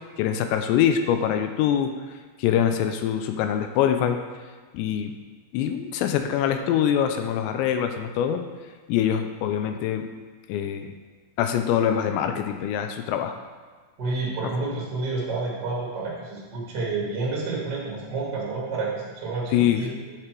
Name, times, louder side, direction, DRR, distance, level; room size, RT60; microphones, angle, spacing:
voice 1, 0.2-1.9 2.4-4.2 4.7-5.1 5.5-8.4 8.9-10.0 10.5-10.9 11.4-13.4 19.5-19.8, left 9 dB, 85° left, 7 dB, 2.7 m, -24 dB
voice 2, 14.0-20.1, right 3 dB, 45° right, -5 dB, 1.3 m, -29 dB
9.0 x 5.0 x 4.6 m, 1.4 s
omnidirectional pair, 5.2 m